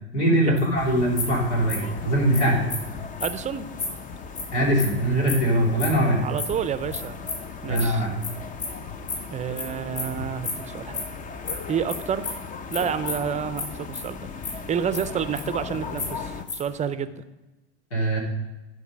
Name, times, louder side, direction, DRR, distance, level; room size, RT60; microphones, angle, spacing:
voice 1, 0.1-2.6 4.5-6.3 7.7-8.2 17.9-18.2, right 1 dB, 90° left, -3 dB, 3.6 m, -22 dB
sound 1, 0.6-0.7 1.2-1.4 1.7-1.9 2.3-2.4 2.7-2.8 3.2-3.3 3.8-3.9 4.3-4.4 4.8-4.9 5.3-5.4 5.8-5.9 6.4-6.5 6.9-7.0 7.3-7.4 7.7-7.8 8.2-8.3 8.6-8.8 9.1-9.6 9.9-10.0 10.4-10.5 10.8-11.0 11.4-11.5 11.9-12.0 12.2-12.4 12.7-12.8 13.1-13.3 13.6-13.7 13.9-14.5 14.9-15.7 16.0-16.8, left 4 dB, 45° left, 3.3 m, -30 dB
sound 2, 0.8-16.4, left 5 dB, 25° left, 0.6 m, -37 dB
voice 2, 3.2-3.7 6.2-7.2 7.6-8.1 9.3-11.1 11.7-12.4 12.7-17.2, right 8 dB, 20° right, 13 dB, 0.5 m, -29 dB
11.5 x 5.3 x 5.2 m, 1.1 s
hypercardioid pair, 100°, 33 cm